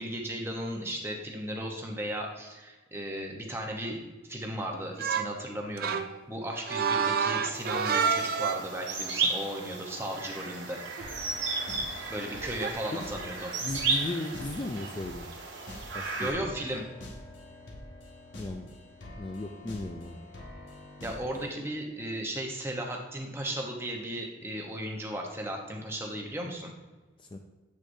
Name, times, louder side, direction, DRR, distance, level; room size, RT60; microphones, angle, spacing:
voice 1, 0.0-6.0 6.3-10.8 12.1-13.5 16.2-16.8 21.0-26.7, right 1 dB, 10° right, 0 dB, 0.9 m, -35 dB
sound 1, 5.0-5.4 5.8-8.8 11.0-11.1 12.4-12.7, right 6 dB, 50° right, 0.3 m, -29 dB
sound 2, 7.5-16.3, right 4 dB, 75° right, 1.6 m, -34 dB
sound 3, 11.0-21.7, left 1 dB, 75° left, 1.7 m, -46 dB
voice 2, 13.6-15.3 15.9-16.4 18.4-18.8 19.2-20.2 27.2-27.4, left 2 dB, 25° left, 3 dB, 0.3 m, -36 dB
8.3 x 6.3 x 2.7 m, 1.2 s
head